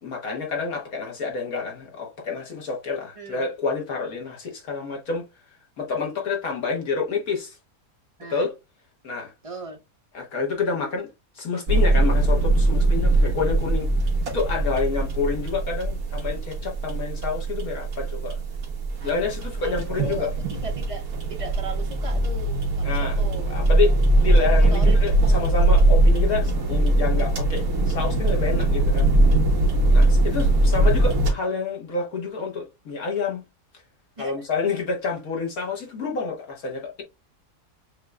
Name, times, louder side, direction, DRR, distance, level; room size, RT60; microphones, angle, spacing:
voice 1, 0.0-5.3 5.8-7.6 8.3-8.5 9.0-9.3 10.1-11.1 11.4-13.9 14.3-18.4 19.0-20.3 22.8-23.2 23.5-29.1 29.9-33.4 34.2-37.0, left 4 dB, 60° left, 1.8 m, -28 dB
voice 2, 9.4-9.8 13.0-13.4 19.0-19.4 19.6-23.6 24.3-25.5 34.2-34.3, right 4 dB, 30° right, 0.6 m, -38 dB
sound 1, 11.7-31.3, right 2 dB, 60° right, 1.6 m, -21 dB
7.4 x 2.8 x 2.2 m
omnidirectional pair, 1.7 m